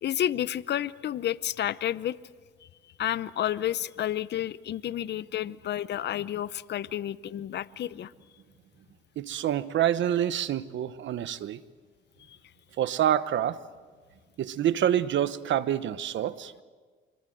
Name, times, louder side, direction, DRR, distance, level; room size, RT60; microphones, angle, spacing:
voice 1, 0.0-2.2 3.0-8.1 12.3-12.4, left 11 dB, 60° left, 16 dB, 0.7 m, -30 dB
voice 2, 9.2-11.6 12.8-13.6 14.4-16.5, right 10 dB, 70° right, 14 dB, 1.1 m, -27 dB
26.5 x 22.0 x 7.9 m, 1.5 s
cardioid pair, 90°, 20 cm